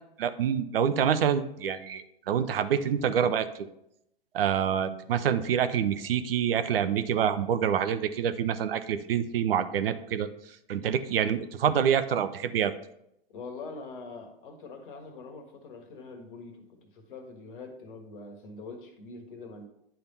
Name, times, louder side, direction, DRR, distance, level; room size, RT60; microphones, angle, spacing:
voice 1, 0.2-3.7 4.3-10.3 10.7-12.7, right 8 dB, 65° right, 11 dB, 0.6 m, -26 dB
voice 2, 13.3-19.7, left 3 dB, 60° left, 4 dB, 1.5 m, -44 dB
10.0 x 3.4 x 4.1 m, 0.78 s
figure-of-eight pair, 105°, 30 cm